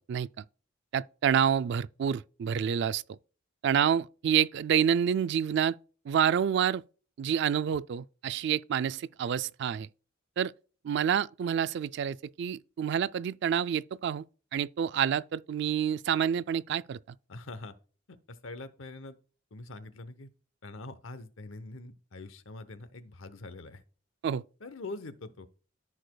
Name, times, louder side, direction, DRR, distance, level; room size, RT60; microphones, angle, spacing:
voice 1, 0.9-3.0 3.6-5.8 6.1-6.8 7.2-9.9 10.4-10.5 10.8-14.2 14.5-17.0 24.2-24.4, right 8 dB, 60° right, 0.3 m, -28 dB
voice 2, 17.3-17.7 18.1-19.2 19.5-20.3 20.6-23.8 24.6-25.5, left 2 dB, 80° left, 0.8 m, -44 dB
14.0 x 4.8 x 2.2 m
head